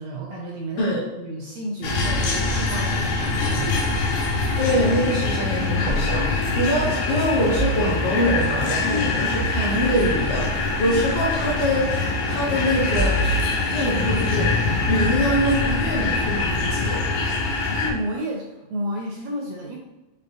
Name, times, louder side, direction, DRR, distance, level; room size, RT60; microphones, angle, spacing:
voice 1, 0.0-3.8 8.9-9.3 17.5-19.8, equal, 80° right, 0 dB, 1.5 m, -31 dB
sound 1, 1.8-17.9, left 3 dB, 90° left, 2.3 m, -24 dB
voice 2, 4.6-14.6 14.9-17.0, equal, 65° left, -5 dB, 1.5 m, -24 dB
sound 2, 5.8-6.9 7.5-8.7 9.4-11.6 12.9-14.0 14.7-16.8, right 2 dB, 45° right, 0.7 m, -31 dB
5.3 x 3.5 x 2.7 m, 1.1 s
omnidirectional pair, 3.4 m